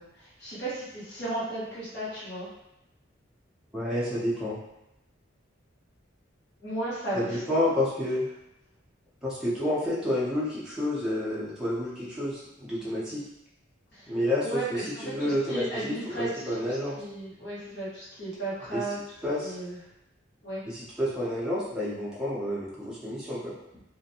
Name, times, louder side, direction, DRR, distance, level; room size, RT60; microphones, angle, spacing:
voice 1, 0.0-2.5 6.6-7.4 13.9-16.5 17.0-19.0 19.4-19.8 20.4-20.6, right 1 dB, 60° left, -9 dB, 1.2 m, -35 dB
voice 2, 3.7-4.6 7.1-8.2 9.2-13.2 14.1-17.0 18.7-18.8 19.2-19.5 20.7-23.5, left 1 dB, 5° right, -9 dB, 0.6 m, -29 dB
2.5 x 2.1 x 2.7 m, 0.87 s
head